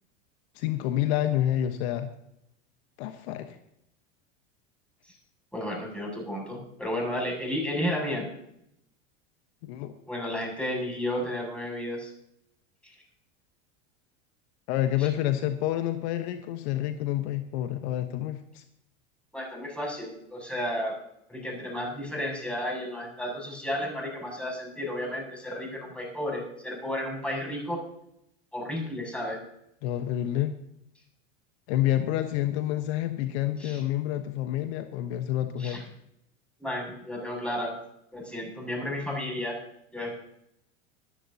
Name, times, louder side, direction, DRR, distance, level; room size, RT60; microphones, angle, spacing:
voice 1, 0.5-2.1 3.0-3.6 9.6-10.0 14.7-18.6 29.8-30.5 31.7-35.8, left 12 dB, 65° left, 8 dB, 1.2 m, -28 dB
voice 2, 5.5-8.3 10.1-12.1 12.8-12.9 19.3-21.0 21.3-27.8 28.5-29.4 33.6-33.8 35.6-35.8 36.6-37.8 38.1-39.6 39.9-40.1, left 1 dB, 5° left, -1 dB, 7.0 m, -32 dB
25.5 x 10.5 x 2.8 m, 0.77 s
hypercardioid pair, 95°, 36 cm